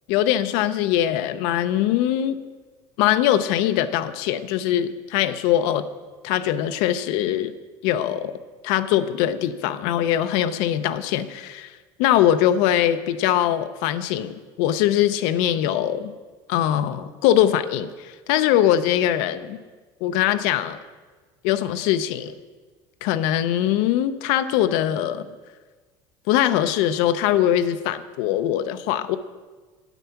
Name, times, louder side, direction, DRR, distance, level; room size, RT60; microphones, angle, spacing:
voice 1, 0.1-2.4 3.0-5.8 6.2-7.5 7.8-8.3 8.6-11.7 12.0-16.1 16.5-19.6 20.0-20.8 21.4-22.3 23.0-25.3 26.3-29.2, left 11 dB, 80° left, 11 dB, 0.5 m, -22 dB
8.3 x 8.0 x 5.8 m, 1.4 s
supercardioid pair, 120°, 12 cm